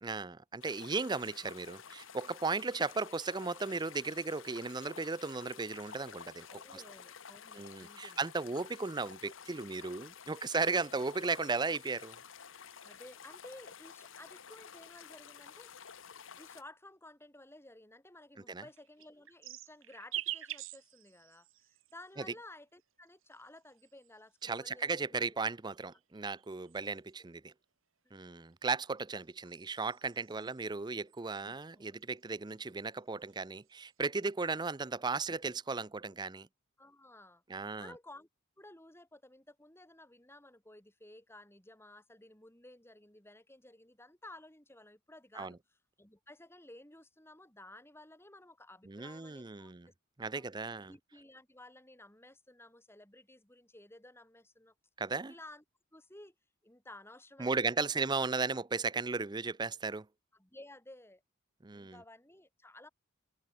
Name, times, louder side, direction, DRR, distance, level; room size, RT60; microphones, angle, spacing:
voice 1, 0.0-6.8 7.5-12.2 18.5-18.6 24.4-27.5 28.1-36.5 37.5-37.9 45.3-45.6 48.9-49.9 50.2-50.9 55.0-55.3 57.4-60.1 61.6-62.0, right 4 dB, 20° right, 0.6 m, -36 dB
sound 1, 0.6-16.6, left 7 dB, 65° left, 1.1 m, -52 dB
voice 2, 6.5-8.2 12.8-15.7 16.4-21.5 21.9-25.5 29.4-29.5 30.1-30.5 31.8-32.0 34.5-34.6 36.8-38.3 38.6-45.6 46.0-49.9 50.3-50.4 50.9-54.7 55.3-55.6 55.9-56.3 56.6-57.9 60.3-61.2 61.7-62.9, left 1 dB, 10° left, 4.7 m, -55 dB
sound 2, 18.7-22.1 23.1-24.4 25.3-27.1 28.5-30.7 31.1-31.6 31.9-33.0 33.3-33.9, right 13 dB, 75° right, 1.8 m, -46 dB
head